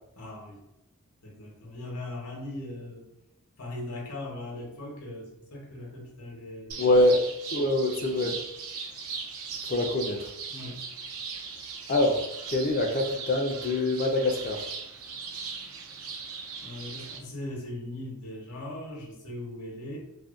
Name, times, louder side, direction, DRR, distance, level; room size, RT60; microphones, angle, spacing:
voice 1, 0.2-0.6 1.2-3.1 3.6-6.8 10.5-10.8 16.6-20.0, left 1 dB, 80° left, -2 dB, 0.8 m, -39 dB
sound 1, 6.7-17.2, right 5 dB, 65° right, 0.4 m, -39 dB
voice 2, 6.8-7.2 7.5-8.4 9.7-10.3 11.9-12.2 12.5-14.6, left 1 dB, 40° left, 3 dB, 0.4 m, -24 dB
2.5 x 2.1 x 2.4 m, 0.87 s
head